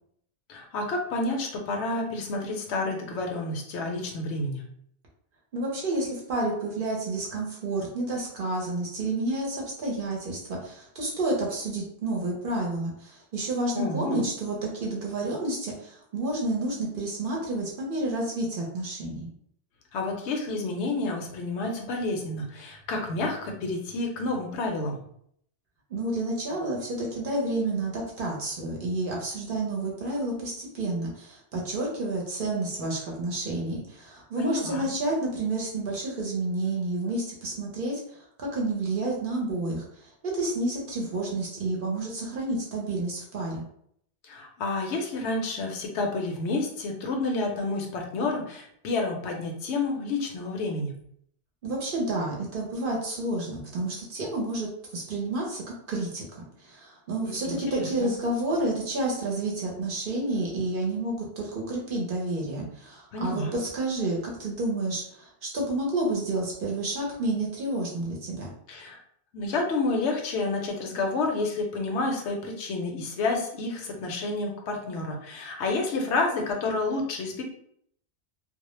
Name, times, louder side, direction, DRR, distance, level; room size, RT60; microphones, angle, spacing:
voice 1, 0.5-4.6 13.7-14.2 19.9-25.0 34.4-34.9 44.2-50.9 57.2-58.1 63.1-63.5 68.7-69.0 69.3-77.4, left 3 dB, 75° left, 2 dB, 0.8 m, -29 dB
voice 2, 5.5-19.3 25.9-38.0 38.4-43.6 51.6-56.2 56.6-68.5, right 2 dB, 55° right, -2 dB, 0.7 m, -30 dB
2.2 x 2.0 x 3.0 m, 0.68 s
omnidirectional pair, 1.2 m